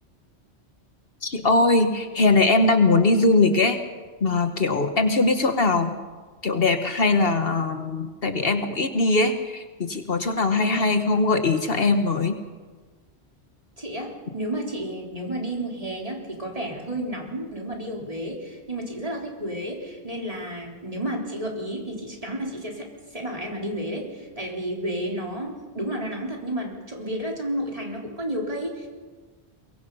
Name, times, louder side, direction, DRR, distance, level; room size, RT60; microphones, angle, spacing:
voice 1, 1.2-3.8 4.2-6.0 6.4-12.4, left 3 dB, 60° left, 7 dB, 1.5 m, -21 dB
voice 2, 10.5-10.8 13.8-28.9, right 1 dB, 35° right, -1 dB, 3.8 m, -31 dB
23.5 x 22.0 x 5.5 m, 1.4 s
omnidirectional pair, 1.1 m